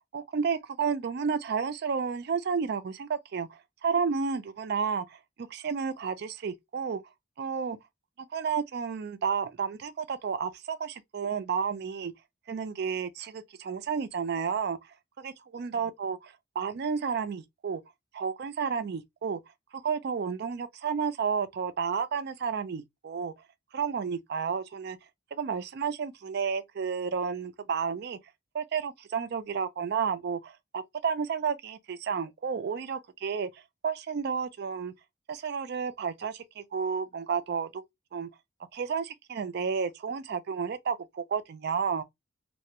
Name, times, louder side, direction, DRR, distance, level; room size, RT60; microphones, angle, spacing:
voice 1, 0.1-7.0 7.4-7.8 8.2-12.1 12.5-14.8 15.2-16.2 16.6-17.8 18.1-19.4 19.7-23.3 23.7-25.0 25.3-28.2 28.5-34.9 35.3-37.8 38.1-38.3 38.7-42.0, right 6 dB, 55° right, 0.4 m, -31 dB
2.3 x 2.1 x 2.7 m
head